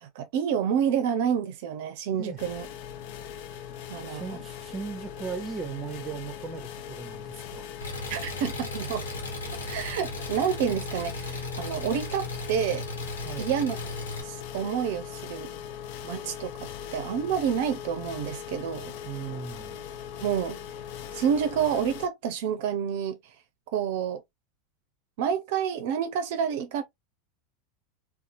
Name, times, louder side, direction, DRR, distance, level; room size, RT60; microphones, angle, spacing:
voice 1, 0.0-2.7 3.9-4.4 8.1-9.0 9.6-12.9 13.4-13.8 14.2-15.5 16.0-16.5 16.9-18.9 20.2-20.6 21.1-23.2 23.7-24.2 25.2-26.8, right 8 dB, 65° right, 0.5 m, -28 dB
sound 1, 2.4-22.1, left 9 dB, 60° left, 0.5 m, -40 dB
voice 2, 4.1-7.7 13.2-13.5 19.0-19.8, right 6 dB, 25° right, 0.7 m, -37 dB
Engine, 7.8-14.2, left 1 dB, 90° left, 1.0 m, -36 dB
2.7 x 2.3 x 2.5 m
hypercardioid pair, 95°, 0 cm